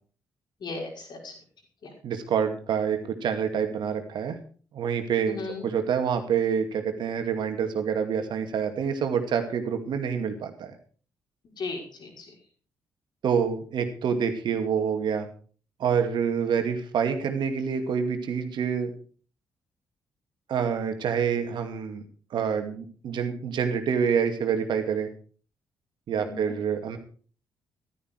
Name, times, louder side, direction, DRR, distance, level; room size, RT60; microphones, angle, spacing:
voice 1, 0.6-1.3 1.8-1.9 5.2-5.7 11.6-12.3 26.2-26.5, left 3 dB, 50° left, 1 dB, 5.5 m, -36 dB
voice 2, 2.0-4.4 4.7-10.8 13.2-15.3 15.8-18.9 20.5-22.0 22.3-25.1 26.1-27.0, right 7 dB, 60° right, 6 dB, 2.3 m, -27 dB
14.5 x 12.5 x 4.7 m, 0.42 s
figure-of-eight pair, 40°, 9 cm